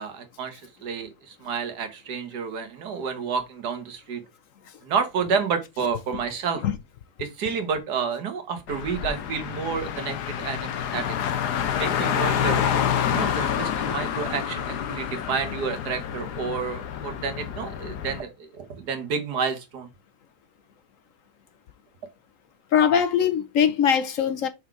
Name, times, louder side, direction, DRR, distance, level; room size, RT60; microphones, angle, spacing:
voice 1, 0.0-4.2 4.8-6.6 7.2-11.2 11.7-12.6 13.1-19.9, right 6 dB, 80° right, 1.8 m, -30 dB
Car, 8.7-18.2, left 9 dB, 90° left, 1.4 m, -28 dB
voice 2, 22.7-24.5, left 8 dB, 60° left, 1.0 m, -21 dB
6.2 x 4.0 x 4.5 m
omnidirectional pair, 1.7 m